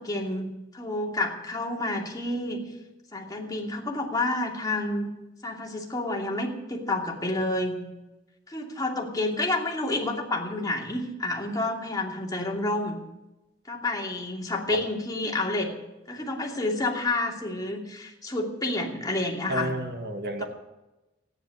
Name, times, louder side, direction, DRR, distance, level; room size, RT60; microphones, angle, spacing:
voice 1, 0.0-2.6 3.1-5.1 5.4-7.8 8.5-13.0 13.7-15.7 16.1-19.7 20.4-20.5, left 2 dB, 20° left, -1 dB, 2.7 m, -29 dB
voice 2, 19.5-20.4, right 1 dB, 55° right, 4 dB, 1.9 m, -30 dB
14.5 x 10.5 x 7.8 m, 1.0 s
head